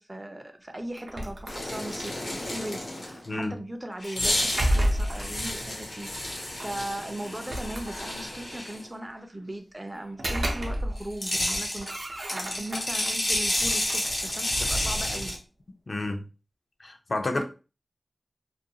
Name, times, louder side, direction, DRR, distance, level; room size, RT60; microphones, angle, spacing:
voice 1, 0.0-15.4 17.3-17.4, right 1 dB, 20° right, 0.4 m, -38 dB
sound 1, 0.9-2.1 4.0-5.4 6.6-6.7 7.3-8.4 9.9-11.2 11.5-13.1 13.6-15.2, right 1 dB, 70° right, 0.6 m, -31 dB
sound 2, 1.5-3.3 4.0-8.8 11.0-15.4, left 1 dB, 90° left, 0.9 m, -30 dB
voice 2, 3.3-3.6 15.9-16.2 16.8-17.4, left 2 dB, 60° left, 0.4 m, -30 dB
2.4 x 2.2 x 2.7 m
wide cardioid pair, 80°, 0 cm